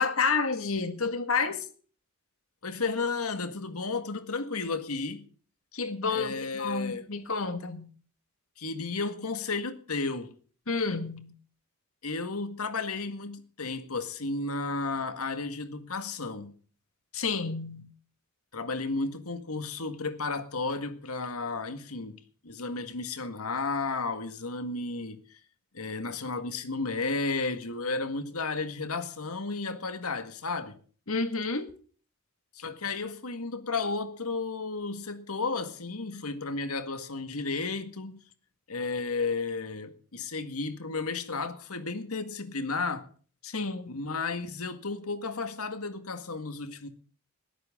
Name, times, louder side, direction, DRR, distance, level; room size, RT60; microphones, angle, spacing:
voice 1, 0.0-1.6 5.7-7.9 10.7-11.3 17.1-17.9 31.1-31.7 43.4-43.9, left 4 dB, 75° left, 2.0 m, -30 dB
voice 2, 2.6-5.3 6.1-7.1 8.6-10.4 12.0-16.5 18.5-25.4 25.7-30.8 32.5-38.3 38.7-43.1 43.9-46.9, left 3 dB, 90° left, 1.9 m, -33 dB
20.5 x 14.0 x 3.8 m
head